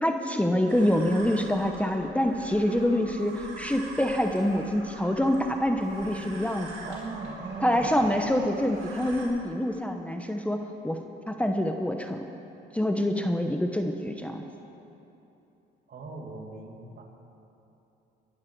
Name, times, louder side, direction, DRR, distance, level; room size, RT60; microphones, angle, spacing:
voice 1, 0.0-6.7 7.6-11.0 11.3-12.3 12.7-14.4, left 1 dB, 5° left, 4 dB, 0.9 m, -26 dB
sound 1, 0.7-9.2, right 3 dB, 90° right, 4.4 m, -44 dB
voice 2, 6.8-8.1 15.9-17.0, right 3 dB, 55° right, 1 dB, 2.5 m, -39 dB
22.5 x 11.5 x 4.7 m, 2.9 s
cardioid pair, 90°, 20 cm